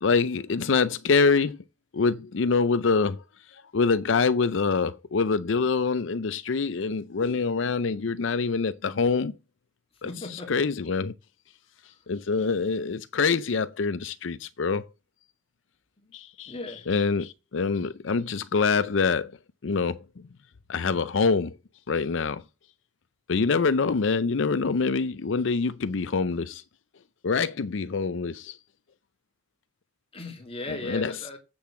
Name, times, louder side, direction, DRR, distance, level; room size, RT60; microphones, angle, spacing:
voice 1, 0.0-1.6 1.9-3.2 3.5-9.4 10.0-11.1 11.8-14.9 16.1-16.5 16.9-19.3 19.6-20.0 20.7-21.6 21.9-22.4 23.3-26.6 27.2-28.6 30.7-31.1, left 4 dB, 80° left, 0.5 m, -25 dB
voice 2, 10.0-10.5 16.0-16.1 16.5-16.9 30.1-31.4, left 2 dB, 30° left, 2.4 m, -37 dB
7.8 x 7.0 x 7.6 m
head